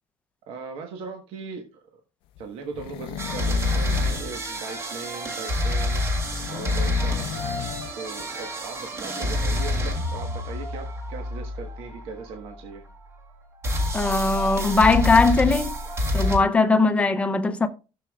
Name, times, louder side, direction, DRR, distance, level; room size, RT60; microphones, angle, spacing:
voice 1, 0.5-1.9 2.4-6.0 6.5-7.2 8.0-12.8, right 4 dB, 70° right, 1.3 m, -38 dB
sound 1, 2.4-4.3 6.2-7.9 8.2-8.3, left 11 dB, 65° left, 0.5 m, -34 dB
sound 2, 3.2-13.1 13.6-16.4, left 1 dB, 25° right, 1.6 m, -27 dB
voice 2, 13.9-15.8 16.1-17.7, left 3 dB, 15° left, 0.6 m, -20 dB
14.0 x 6.9 x 2.4 m
cardioid pair, 175°, 10 cm